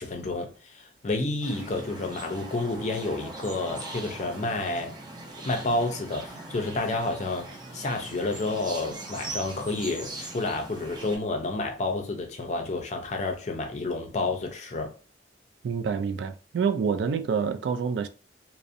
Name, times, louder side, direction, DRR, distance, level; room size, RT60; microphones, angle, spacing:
voice 1, 0.0-5.0 5.4-14.9, left 2 dB, 40° left, 0.5 m, -30 dB
sound 1, 1.4-11.2, right 2 dB, 25° right, 0.5 m, -41 dB
voice 2, 15.6-18.1, right 6 dB, 80° right, 0.3 m, -27 dB
2.6 x 2.0 x 2.4 m
head